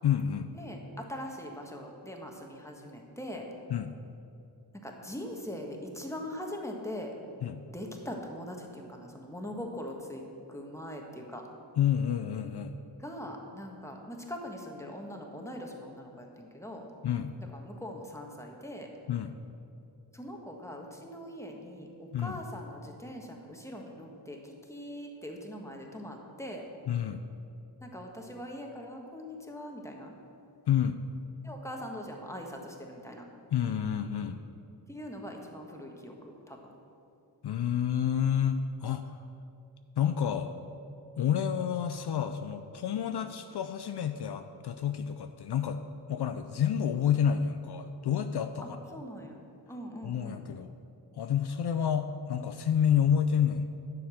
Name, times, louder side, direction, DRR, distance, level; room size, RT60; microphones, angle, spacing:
voice 1, 0.0-0.5 3.7-3.9 7.4-7.6 11.8-12.7 17.0-17.3 19.1-19.3 22.1-22.4 26.9-27.2 30.7-31.0 33.5-34.4 37.4-39.2 40.0-40.5 41.2-45.8 46.1-49.0 50.0-50.7 51.1-53.7, left 8 dB, 65° left, 9 dB, 0.5 m, -29 dB
voice 2, 0.6-3.4 4.8-7.1 7.7-10.2 10.5-11.4 13.0-16.8 17.5-18.9 20.1-26.6 27.8-30.1 31.4-33.2 34.9-36.1 36.5-36.6 48.9-50.5, equal, 5° left, 1 dB, 1.6 m, -42 dB
10.5 x 7.1 x 6.4 m, 2.6 s
wide cardioid pair, 80°, 42 cm